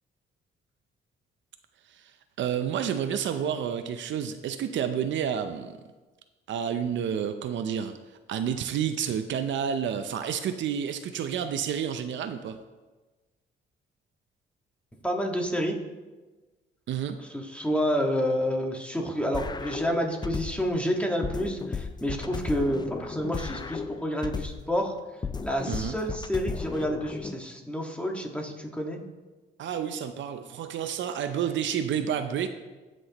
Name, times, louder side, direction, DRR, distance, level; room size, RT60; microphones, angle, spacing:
voice 1, 2.4-5.8 6.5-7.9 8.3-12.6 16.9-17.2 25.7-26.0 29.6-32.5, right 8 dB, 70° right, 9 dB, 0.6 m, -30 dB
voice 2, 15.0-15.8 17.3-24.9 25.4-29.0, equal, 5° left, 1 dB, 1.6 m, -29 dB
sound 1, 19.3-20.8 21.2-24.8 25.2-27.3, left 5 dB, 20° left, 0.4 m, -35 dB
17.5 x 6.2 x 3.0 m, 1.2 s
cardioid pair, 90°, 20 cm